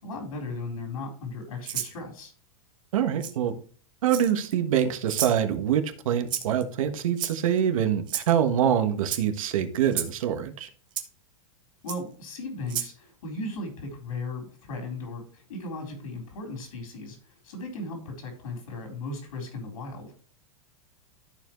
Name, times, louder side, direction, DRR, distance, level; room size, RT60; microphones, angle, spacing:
voice 1, 0.0-2.3 11.8-20.1, left 2 dB, 85° left, 2 dB, 3.9 m, -36 dB
Rattle (instrument), 1.6-1.9 3.2-3.3 4.1-4.5 5.1-5.4 6.3-6.6 7.2-7.6 8.1-8.3 9.0-9.2 9.9-10.1 11.0-11.1 11.9-12.0 12.7-12.9, right 10 dB, 25° right, 1.0 m, -31 dB
voice 2, 2.9-3.5 4.0-10.7, right 9 dB, 75° right, 7 dB, 1.3 m, -25 dB
13.5 x 4.7 x 3.1 m, 0.42 s
supercardioid pair, 160°, 17 cm